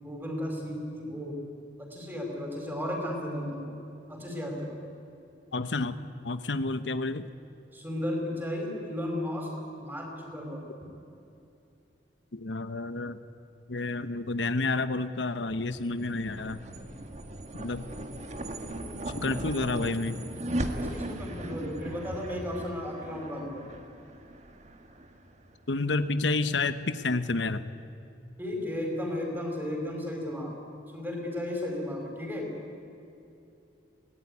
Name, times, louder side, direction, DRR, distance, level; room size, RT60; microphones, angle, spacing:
voice 1, 0.0-1.4 1.8-3.8 4.1-4.8 7.7-9.5 9.8-10.7 20.7-23.7 28.4-30.5 30.9-32.5, left 1 dB, 10° right, 1 dB, 5.2 m, -34 dB
voice 2, 5.5-7.3 12.3-13.2 13.7-16.6 17.5-17.9 19.1-20.2 25.7-27.6, left 3 dB, 90° left, 11 dB, 1.0 m, -30 dB
sound 1, 15.5-26.1, right 1 dB, 40° right, 1.7 m, -38 dB
24.0 x 18.5 x 9.8 m, 2.8 s
head